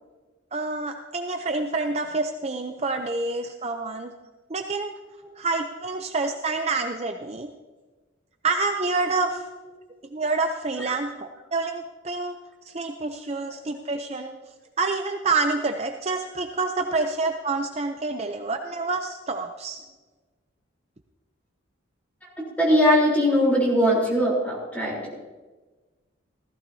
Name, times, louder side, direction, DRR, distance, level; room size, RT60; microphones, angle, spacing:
voice 1, 0.5-4.1 4.5-4.9 5.4-7.5 8.4-9.5 10.1-12.4 12.7-14.4 14.8-19.8, right 3 dB, 30° right, 5 dB, 0.5 m, -27 dB
voice 2, 22.6-25.1, equal, 10° left, -4 dB, 3.6 m, -20 dB
16.0 x 14.5 x 2.7 m, 1.3 s
head